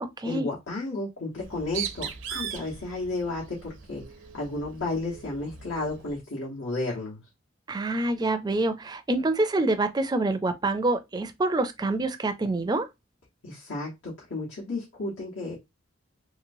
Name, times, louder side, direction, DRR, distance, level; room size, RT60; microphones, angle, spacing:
voice 1, 0.2-4.0 4.3-7.2 13.4-15.6, left 2 dB, 85° left, 1.2 m, -32 dB
Bird, 1.3-6.2, right 8 dB, 70° right, 0.6 m, -39 dB
voice 2, 7.7-12.9, right 2 dB, 20° right, 0.4 m, -26 dB
3.1 x 2.9 x 2.6 m
head